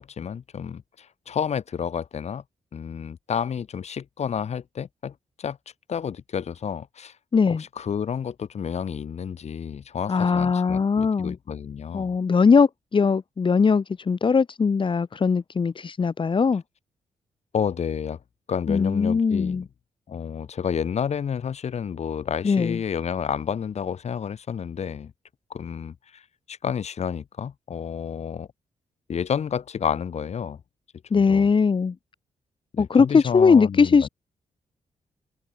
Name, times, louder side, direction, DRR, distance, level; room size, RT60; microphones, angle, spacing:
voice 1, 0.0-2.4 2.7-5.6 5.9-7.1 7.5-12.1 17.5-18.2 18.5-19.7 20.1-25.1 25.5-26.2 26.5-28.5 29.1-30.6 31.1-31.5 32.7-34.1, left 7 dB, 60° left, 7.9 m, -30 dB
voice 2, 7.3-7.6 10.1-11.4 11.9-16.6 18.7-19.7 22.4-22.8 31.1-32.0 32.8-34.1, left 5 dB, 40° left, 5.2 m, -20 dB
cardioid pair, 105°, 12 cm